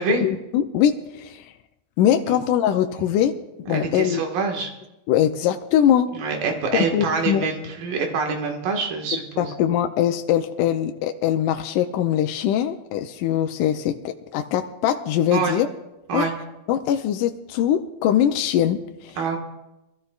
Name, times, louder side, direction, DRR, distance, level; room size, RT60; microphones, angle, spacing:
voice 1, 0.1-1.5 2.0-3.3 3.7-4.2 5.1-6.1 6.7-7.5 9.4-15.7 16.1-16.3 16.7-19.2, left 10 dB, 80° left, 6 dB, 2.0 m, -22 dB
voice 2, 3.7-4.7 6.1-9.5 15.3-15.5 16.1-16.3 19.2-19.4, right 4 dB, 80° right, 2 dB, 3.4 m, -25 dB
23.5 x 14.0 x 2.4 m, 0.95 s
omnidirectional pair, 3.9 m